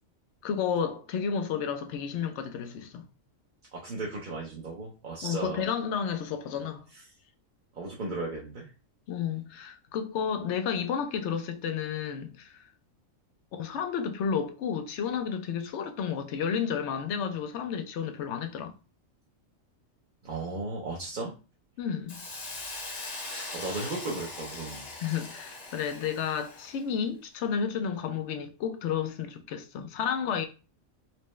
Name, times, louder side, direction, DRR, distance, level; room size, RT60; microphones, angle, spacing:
voice 1, 0.4-3.0 5.2-6.8 9.1-12.7 13.5-18.7 21.8-22.2 23.0-23.1 25.0-30.5, left 7 dB, 70° left, 0.8 m, -31 dB
voice 2, 3.7-5.6 7.7-8.7 20.2-21.3 23.3-24.9, right 2 dB, 45° right, 0.7 m, -35 dB
Hiss, 22.1-26.8, left 2 dB, 35° left, 0.9 m, -40 dB
4.3 x 2.1 x 3.0 m
omnidirectional pair, 1.4 m